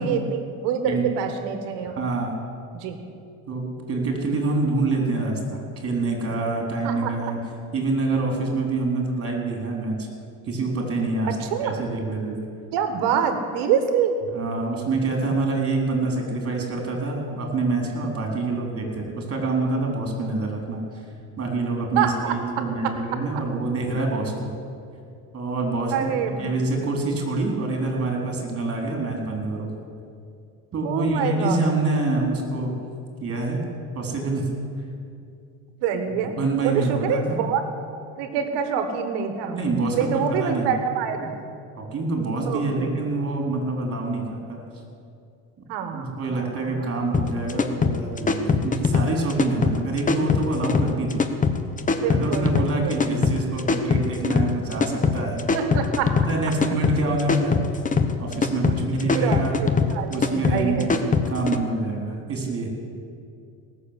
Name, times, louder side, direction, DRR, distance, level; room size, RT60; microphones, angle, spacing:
voice 1, 0.0-2.0 2.7-3.0 6.8-7.3 11.2-11.8 12.7-14.2 22.0-22.4 25.9-26.9 30.8-31.7 35.8-36.4 36.6-37.6 38.2-39.6 39.9-41.4 42.5-42.9 45.7-46.9 52.0-53.0 55.5-56.2 58.6-58.7 59.1-60.9, right 7 dB, 70° right, 7 dB, 1.8 m, -26 dB
voice 2, 1.9-2.4 3.5-7.4 7.7-10.1 10.5-11.4 11.6-12.4 14.3-20.8 21.4-24.5 25.3-29.7 30.7-32.7 33.2-33.6 33.9-34.5 36.1-37.4 39.5-40.7 41.2-41.3 41.8-44.6 45.9-51.3 52.0-55.5 56.1-57.6 58.2-59.6 60.1-62.7, right 3 dB, 35° right, 1 dB, 4.0 m, -26 dB
sound 1, 47.1-61.6, left 5 dB, 20° left, 0.9 m, -22 dB
18.0 x 7.1 x 8.3 m, 2.4 s
supercardioid pair, 105°, 42 cm